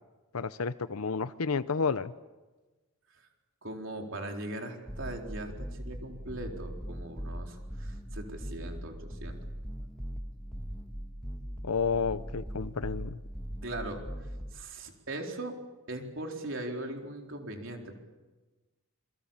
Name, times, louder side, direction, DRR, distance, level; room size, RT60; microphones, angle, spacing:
voice 1, 0.3-2.1 11.6-13.2, left 5 dB, 80° left, 14 dB, 0.7 m, -31 dB
voice 2, 3.6-9.4 13.6-15.6 15.9-18.0, right 1 dB, 60° right, 2 dB, 4.2 m, -40 dB
sound 1, 4.9-14.6, equal, 5° left, 1.8 m, -40 dB
28.0 x 23.5 x 7.4 m, 1.2 s
head